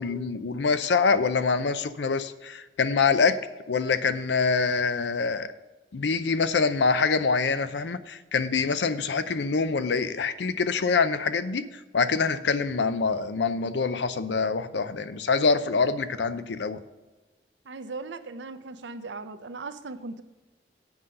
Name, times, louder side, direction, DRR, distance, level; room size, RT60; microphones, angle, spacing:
voice 1, 0.0-3.4 3.7-5.5 5.9-11.6 11.9-16.8, left 4 dB, 80° left, 12 dB, 0.6 m, -25 dB
voice 2, 17.7-20.2, right 3 dB, 90° right, 10 dB, 0.6 m, -38 dB
8.0 x 5.5 x 6.5 m, 1.2 s
head